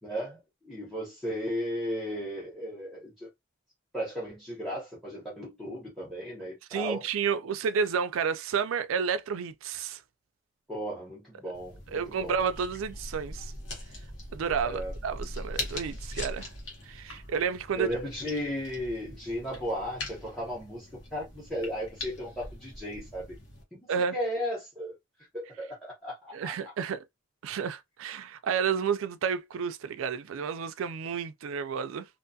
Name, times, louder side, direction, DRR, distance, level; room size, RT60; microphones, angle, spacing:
voice 1, 0.0-3.3 3.9-7.0 10.7-12.4 14.6-14.9 17.8-23.3 23.7-25.0 25.3-26.7, equal, ahead, 0.8 m, -35 dB
voice 2, 6.7-10.0 11.9-13.5 14.3-16.5 16.9-17.9 23.9-24.2 26.3-27.0 27.4-32.1, right 6 dB, 80° right, 0.3 m, -31 dB
sound 1, 11.5-23.6, left 1 dB, 60° left, 0.9 m, -41 dB
2.5 x 2.3 x 2.6 m
head